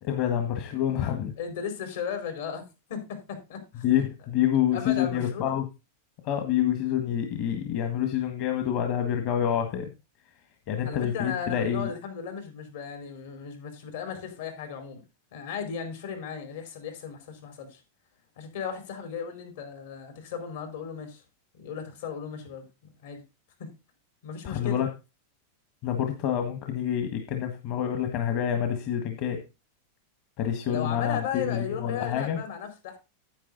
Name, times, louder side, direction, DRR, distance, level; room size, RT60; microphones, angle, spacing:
voice 1, 0.0-1.3 3.8-5.6 6.2-9.9 10.7-11.9 24.4-24.9 25.8-29.4 30.4-32.4, left 10 dB, 50° left, 5 dB, 1.7 m, -27 dB
voice 2, 1.4-2.6 2.9-3.8 4.7-5.6 10.8-15.0 15.3-17.8 18.4-21.2 21.5-22.7 23.0-23.2 23.6-23.7 24.2-24.8 30.7-33.0, left 7 dB, 75° left, 5 dB, 4.7 m, -36 dB
10.0 x 8.6 x 4.0 m, 0.28 s
supercardioid pair, 135°, 0 cm